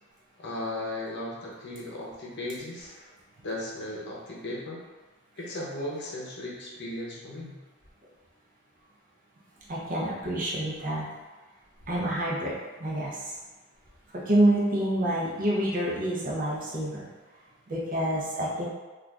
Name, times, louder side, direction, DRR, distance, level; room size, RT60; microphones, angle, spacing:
voice 1, 0.4-2.9 3.4-4.8 5.4-7.6, left 1 dB, 60° left, -4 dB, 0.7 m, -36 dB
voice 2, 9.7-11.1 11.9-13.3 14.1-17.1 17.7-18.7, right 1 dB, 40° right, -5 dB, 0.7 m, -27 dB
2.5 x 2.4 x 3.2 m, 1.2 s
head